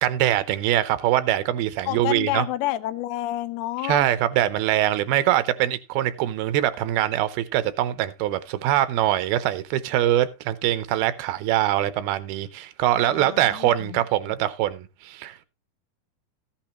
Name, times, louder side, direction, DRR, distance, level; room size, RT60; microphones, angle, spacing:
voice 1, 0.0-2.4 3.8-15.5, right 13 dB, 80° right, 2.5 m, -23 dB
voice 2, 1.9-4.1 12.9-14.0, left 16 dB, 85° left, 2.6 m, -29 dB
14.0 x 8.7 x 2.9 m
omnidirectional pair, 4.4 m